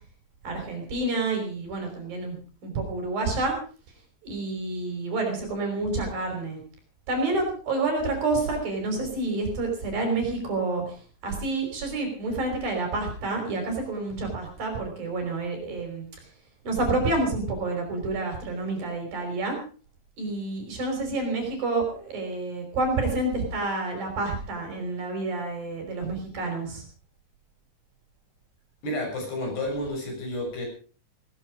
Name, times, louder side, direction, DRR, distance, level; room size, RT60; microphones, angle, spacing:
voice 1, 0.4-3.6 4.2-6.6 7.1-11.0 11.2-16.0 16.6-19.6 20.2-26.8, right 2 dB, 50° right, 3 dB, 6.6 m, -29 dB
voice 2, 28.8-30.7, left 1 dB, 60° left, 1 dB, 8.8 m, -31 dB
18.0 x 15.5 x 5.1 m, 0.38 s
omnidirectional pair, 5.3 m